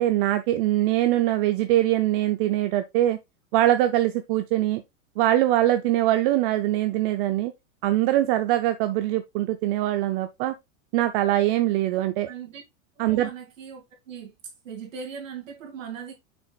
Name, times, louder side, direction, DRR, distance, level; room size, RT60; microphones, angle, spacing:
voice 1, 0.0-3.2 3.5-4.8 5.2-7.5 7.8-10.5 10.9-12.3 13.0-13.3, right 14 dB, 45° right, 0.6 m, -22 dB
voice 2, 12.3-12.6 13.0-14.3 14.6-16.1, right 7 dB, 85° right, 2.3 m, -39 dB
6.6 x 6.2 x 2.3 m
supercardioid pair, 135°, 38 cm